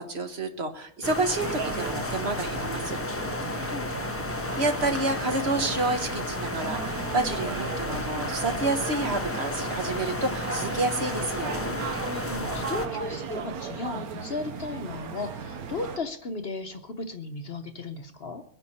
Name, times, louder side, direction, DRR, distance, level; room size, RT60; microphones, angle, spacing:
voice 1, 0.0-3.0 3.5-3.7 4.5-11.7, right 2 dB, 45° right, 6 dB, 1.4 m, -29 dB
sound 1, 1.0-12.9, left 2 dB, 20° left, 0.4 m, -33 dB
sound 2, 1.4-16.0, right 6 dB, 80° right, 1.5 m, -36 dB
voice 2, 3.4-3.9 12.3-18.4, left 3 dB, 50° left, 7 dB, 1.0 m, -35 dB
22.0 x 10.0 x 4.2 m, 0.68 s
omnidirectional pair, 1.5 m